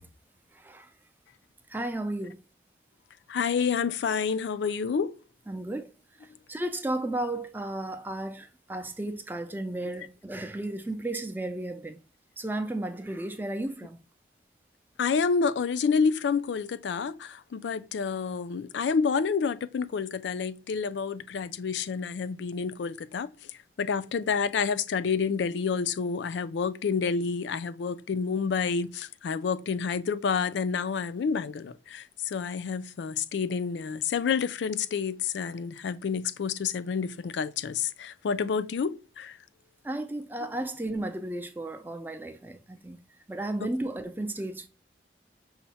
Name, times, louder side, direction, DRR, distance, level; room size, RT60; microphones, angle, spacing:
voice 1, 0.5-0.9 1.7-2.4 5.5-5.9 6.5-12.0 12.4-14.0 39.8-43.0 43.3-44.7, right 1 dB, 10° right, 0.4 m, -34 dB
voice 2, 3.3-5.2 15.0-23.5 23.8-39.4, left 5 dB, 80° left, 0.4 m, -29 dB
5.6 x 2.1 x 4.1 m
head